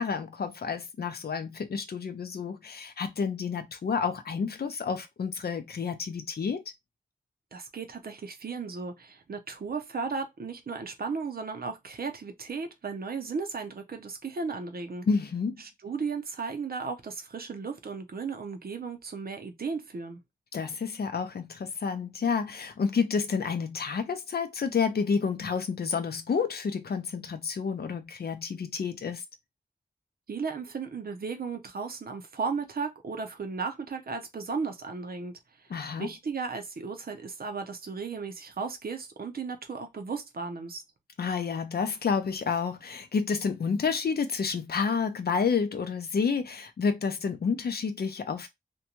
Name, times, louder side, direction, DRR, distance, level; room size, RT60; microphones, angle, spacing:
voice 1, 0.0-6.6 15.1-15.6 20.5-29.2 35.7-36.1 41.2-48.5, left 5 dB, 80° left, 0.5 m, -30 dB
voice 2, 7.5-15.1 15.6-20.2 30.3-35.7 36.0-40.8, right 5 dB, 70° right, 0.6 m, -35 dB
2.6 x 2.2 x 2.9 m
wide cardioid pair, 70°, 16 cm